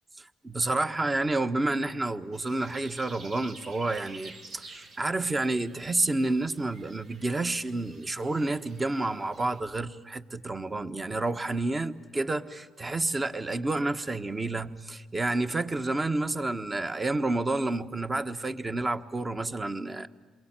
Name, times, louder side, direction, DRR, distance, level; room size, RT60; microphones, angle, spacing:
voice 1, 0.2-20.1, right 2 dB, 25° right, 1.4 m, -29 dB
sound 1, 2.3-9.6, right 3 dB, 75° right, 5.1 m, -51 dB
28.0 x 22.5 x 9.0 m
cardioid pair, 90°, 0 cm